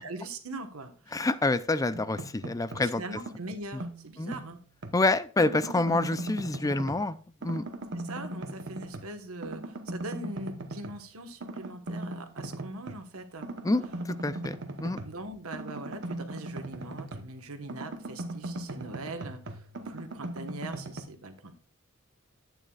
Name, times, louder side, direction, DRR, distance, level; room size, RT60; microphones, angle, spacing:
voice 1, 0.0-1.2 2.8-4.6 7.9-13.5 15.0-21.5, right 2 dB, 80° right, 7 dB, 1.4 m, -41 dB
voice 2, 1.1-3.0 4.2-4.3 4.9-7.2 7.4-7.6 13.6-13.8 14.2-15.0, left 2 dB, 15° left, 14 dB, 0.4 m, -27 dB
sound 1, 1.9-2.9 3.3-5.0 5.4-7.1 7.4-9.2 9.4-11.0 11.4-13.0 13.4-17.4 17.7-21.0, right 1 dB, 60° right, 1.0 m, -39 dB
11.0 x 9.1 x 2.4 m, 0.40 s
head